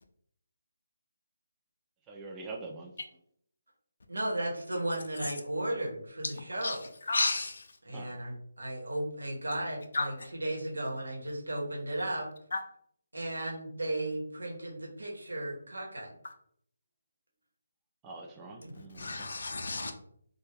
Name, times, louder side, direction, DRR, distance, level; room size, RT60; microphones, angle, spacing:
voice 1, 2.1-2.9 7.9-8.2 18.0-19.3, right 3 dB, 15° right, 1 dB, 0.3 m, -44 dB
voice 2, 4.1-6.8 7.8-12.3 13.1-16.2 18.6-18.7, right 1 dB, 90° right, -2 dB, 0.9 m, -35 dB
voice 3, 7.1-7.7 9.9-10.1 12.5-12.6 19.0-19.9, left 3 dB, 65° left, 5 dB, 0.4 m, -31 dB
2.2 x 2.1 x 3.2 m, 0.68 s
figure-of-eight pair, 155°, 0 cm